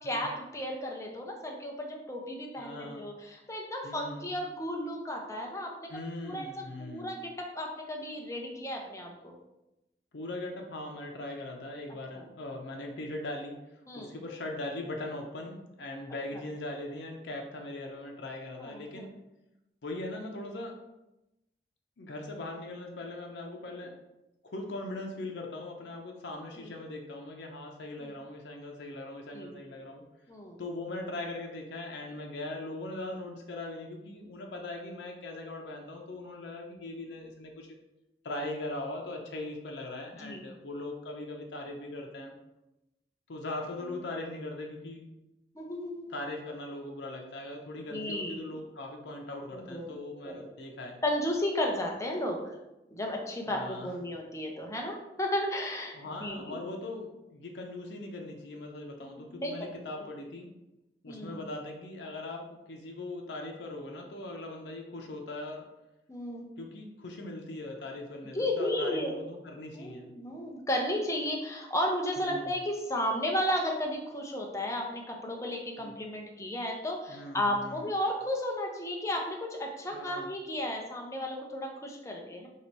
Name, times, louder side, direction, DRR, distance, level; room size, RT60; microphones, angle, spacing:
voice 1, 0.0-5.9 6.2-6.5 6.8-9.3 12.2-12.3 13.9-14.1 18.6-19.1 26.6-26.7 28.0-28.1 29.3-29.5 30.3-30.6 40.2-40.4 45.5-46.1 47.9-48.6 49.5-49.9 50.2-50.5 51.0-52.5 52.9-56.6 59.0-59.7 61.1-61.4 66.1-66.4 68.3-69.2 69.7-82.5, left 1 dB, 15° left, 1 dB, 0.6 m, -34 dB
voice 2, 2.6-3.1 3.8-4.3 5.9-7.1 10.1-13.6 14.0-19.1 19.8-20.7 22.0-23.9 24.4-30.0 30.6-37.7 38.2-42.3 43.3-45.1 46.1-51.0 53.4-54.0 55.9-60.5 61.0-65.6 66.6-70.1 72.2-72.6 75.8-75.9 77.1-77.9 79.9-80.3, left 2 dB, 90° left, 1 dB, 0.6 m, -40 dB
3.0 x 2.8 x 4.5 m, 0.94 s
head